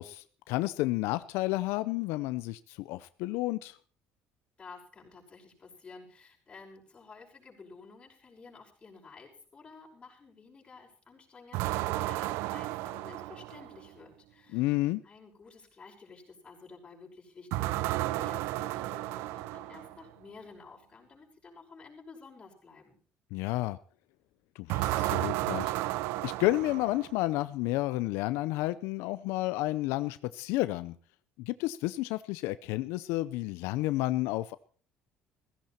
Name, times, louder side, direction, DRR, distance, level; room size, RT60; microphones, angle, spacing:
voice 1, 0.0-3.8 14.5-15.0 23.3-23.8 24.6-25.7 26.2-30.9 31.4-34.6, left 18 dB, 90° left, 14 dB, 0.6 m, -31 dB
voice 2, 4.6-14.8 15.0-17.7 17.9-23.0, left 4 dB, 25° left, -1 dB, 5.8 m, -52 dB
sound 1, 11.5-13.9 17.5-20.0 24.7-27.3, right 17 dB, 85° right, 0.6 m, -33 dB
16.0 x 15.5 x 4.3 m, 0.43 s
cardioid pair, 125°, 4 cm